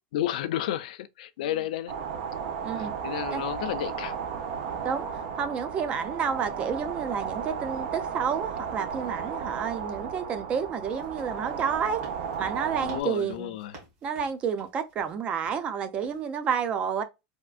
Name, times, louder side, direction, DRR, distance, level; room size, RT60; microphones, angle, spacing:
voice 1, 0.1-2.0 2.7-4.2 12.8-13.8, left 12 dB, 80° left, 0.4 m, -32 dB
sound 1, 1.9-13.0, right 6 dB, 65° right, 0.7 m, -34 dB
voice 2, 5.4-12.0 12.4-13.5 14.0-17.0, right 7 dB, 25° right, 0.5 m, -30 dB
sound 2, 10.8-15.7 16.0-16.3, right 3 dB, 45° right, 1.7 m, -53 dB
3.5 x 2.4 x 2.4 m
supercardioid pair, 160°, 4 cm